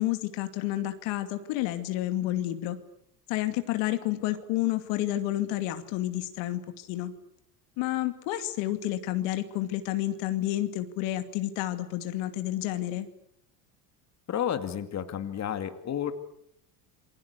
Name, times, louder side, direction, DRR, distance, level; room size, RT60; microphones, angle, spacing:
voice 1, 0.0-2.8 3.3-7.1 7.8-13.1, left 14 dB, 70° left, 9 dB, 2.5 m, -30 dB
voice 2, 14.3-16.1, left 9 dB, 35° left, 9 dB, 2.4 m, -31 dB
28.0 x 22.0 x 8.3 m, 0.74 s
supercardioid pair, 115°, 46 cm